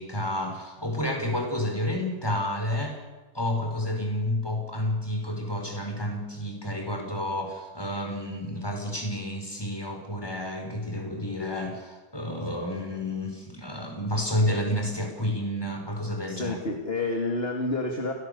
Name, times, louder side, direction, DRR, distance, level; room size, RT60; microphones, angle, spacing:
voice 1, 0.0-3.0 3.3-16.6, left 1 dB, 10° left, 3 dB, 5.4 m, -30 dB
voice 2, 16.3-18.1, left 2 dB, 30° left, 3 dB, 2.8 m, -29 dB
29.0 x 18.5 x 7.1 m, 1.2 s
omnidirectional pair, 2.2 m